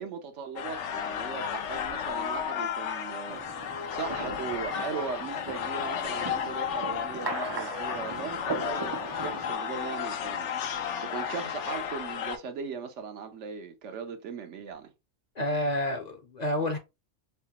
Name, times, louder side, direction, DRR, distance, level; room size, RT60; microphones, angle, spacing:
voice 1, 0.0-14.9, right 6 dB, 70° right, 1.0 m, -39 dB
sound 1, 0.6-12.4, left 8 dB, 75° left, 0.9 m, -33 dB
sound 2, 3.3-9.5, right 4 dB, 40° right, 0.3 m, -39 dB
voice 2, 15.4-16.8, left 1 dB, 40° left, 0.7 m, -29 dB
5.6 x 2.1 x 2.8 m
omnidirectional pair, 1.3 m